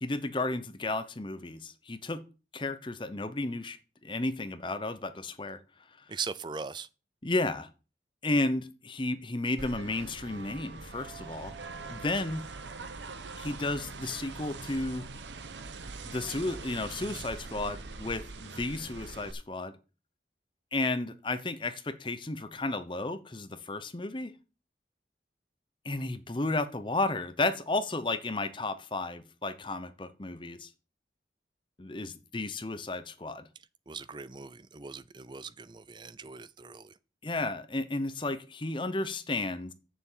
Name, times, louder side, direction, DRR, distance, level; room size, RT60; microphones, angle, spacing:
voice 1, 0.0-2.2 2.5-3.8 4.0-5.6 7.2-7.7 8.2-11.6 11.9-12.4 13.4-15.1 16.0-19.8 20.7-24.3 25.8-30.7 31.8-33.5 37.2-39.7, left 2 dB, 25° left, 0.8 m, -33 dB
voice 2, 6.1-6.9 33.9-36.9, right 5 dB, 25° right, 0.5 m, -40 dB
sound 1, 9.6-19.3, right 3 dB, 85° right, 1.0 m, -43 dB
7.0 x 6.9 x 7.4 m
head